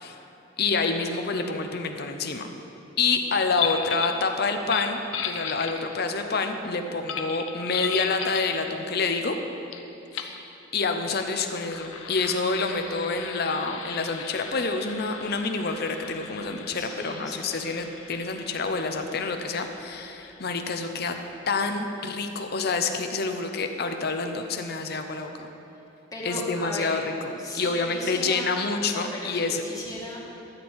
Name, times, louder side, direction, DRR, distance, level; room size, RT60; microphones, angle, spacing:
voice 1, 0.6-2.5 3.0-9.3 10.1-10.4 10.7-21.1 21.5-25.5 26.2-27.0 27.4-29.6, left 4 dB, 55° left, 6 dB, 0.8 m, -28 dB
sound 1, 3.6-4.2 4.6-6.1 7.1-8.5 9.7-9.8 10.1-10.4 11.4-20.7, left 8 dB, 85° left, 0.8 m, -36 dB
voice 2, 16.8-17.7 26.1-26.9 27.4-28.5 28.8-30.4, left 1 dB, 20° left, -4 dB, 1.8 m, -36 dB
12.5 x 4.5 x 8.4 m, 3.0 s
head